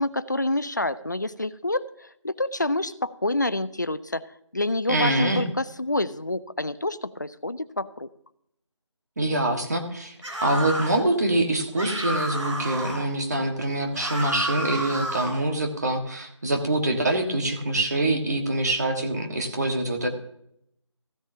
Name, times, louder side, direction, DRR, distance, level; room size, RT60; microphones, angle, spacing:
voice 1, 0.0-8.1, left 2 dB, 35° left, 15 dB, 0.4 m, -28 dB
voice 2, 4.9-5.4 9.2-10.1 10.4-20.1, right 1 dB, 35° right, 4 dB, 1.5 m, -25 dB
sound 1, 10.2-11.0 11.8-13.1 13.9-15.4, right 1 dB, 75° right, 3.5 m, -31 dB
15.5 x 10.0 x 2.7 m, 0.73 s
figure-of-eight pair, 175°, 16 cm